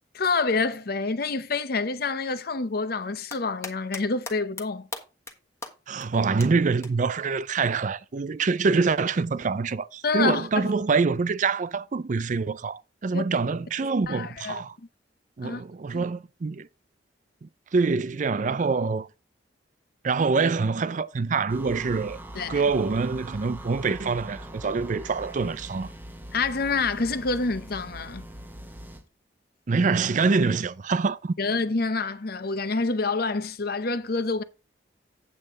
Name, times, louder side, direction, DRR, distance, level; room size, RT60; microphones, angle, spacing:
voice 1, 0.1-4.9 10.0-10.7 13.1-13.2 13.8-14.6 15.4-15.6 15.9-16.0 22.3-22.6 26.3-28.3 31.4-34.4, left 3 dB, 55° left, 0.8 m, -27 dB
sound 1, 3.0-4.0 4.3-4.6 4.9-5.3 5.6-5.7 6.0-6.1 6.4-6.5 6.8-6.9 8.5-8.6, left 3 dB, 15° left, 1.4 m, -36 dB
voice 2, 5.9-14.8 15.4-16.7 17.4-19.1 20.0-22.2 22.5-25.9 29.7-31.3, right 4 dB, 45° right, 0.4 m, -25 dB
sound 2, 21.5-29.0, right 1 dB, 10° right, 1.0 m, -42 dB
8.6 x 8.2 x 3.7 m
head